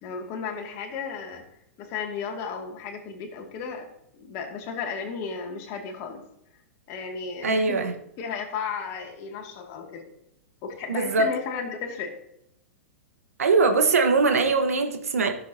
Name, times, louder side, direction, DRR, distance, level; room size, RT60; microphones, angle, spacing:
voice 1, 0.0-1.4 1.8-3.9 4.2-6.2 6.9-7.8 8.2-10.1 10.6-12.1, left 5 dB, 45° left, 2 dB, 2.4 m, -34 dB
voice 2, 7.4-7.9 10.9-11.3 13.4-15.3, right 4 dB, 80° right, 5 dB, 1.4 m, -21 dB
14.5 x 7.5 x 2.9 m, 0.78 s
hypercardioid pair, 110°, 8 cm